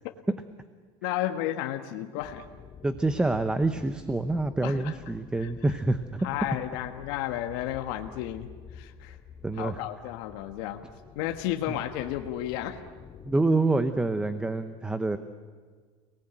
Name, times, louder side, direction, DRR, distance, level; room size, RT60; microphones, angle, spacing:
voice 1, 1.0-2.4 4.6-4.9 5.4-5.5 6.2-9.2 9.6-10.8 11.1-12.8, left 12 dB, 70° left, 5 dB, 1.5 m, -32 dB
subwat out, 2.2-13.3, left 7 dB, 25° left, 1.3 m, -49 dB
voice 2, 2.8-6.3 9.4-9.8 13.2-15.2, right 2 dB, 5° right, 10 dB, 0.8 m, -26 dB
29.5 x 19.5 x 9.0 m, 1.5 s
cardioid pair, 150°, 13 cm